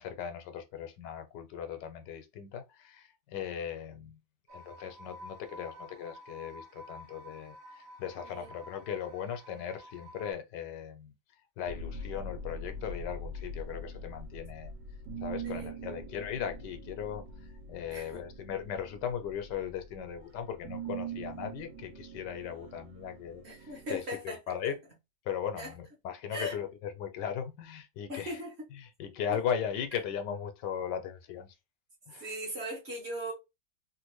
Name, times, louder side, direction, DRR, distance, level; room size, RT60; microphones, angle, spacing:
voice 1, 0.0-4.2 4.5-14.7 15.2-24.8 25.2-28.4 28.7-31.5 32.1-32.3, left 8 dB, 85° left, 1.3 m, -38 dB
sound 1, 4.5-10.3, equal, 65° right, 1.0 m, -50 dB
sound 2, 11.7-24.0, right 2 dB, 85° right, 1.5 m, -43 dB
voice 2, 15.4-16.0 17.9-18.2 23.4-24.7 25.6-25.7 26.3-26.5 28.1-28.5 32.2-33.3, equal, 45° right, 1.2 m, -39 dB
3.2 x 2.5 x 3.0 m
omnidirectional pair, 1.8 m